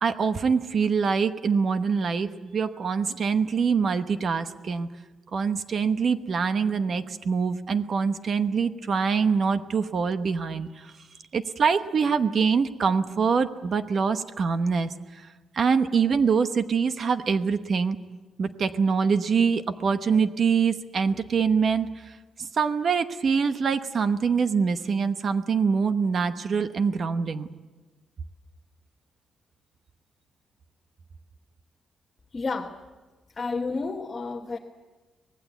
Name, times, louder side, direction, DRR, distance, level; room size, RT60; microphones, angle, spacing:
voice 1, 0.0-4.9 5.3-10.9 11.3-14.9 15.5-18.0 18.4-22.1 22.4-27.5, right 5 dB, 40° right, 9 dB, 1.0 m, -24 dB
voice 2, 32.3-32.8 33.4-34.6, left 4 dB, 25° left, 1 dB, 1.2 m, -30 dB
24.5 x 19.5 x 8.2 m, 1.2 s
wide cardioid pair, 175°, 0 cm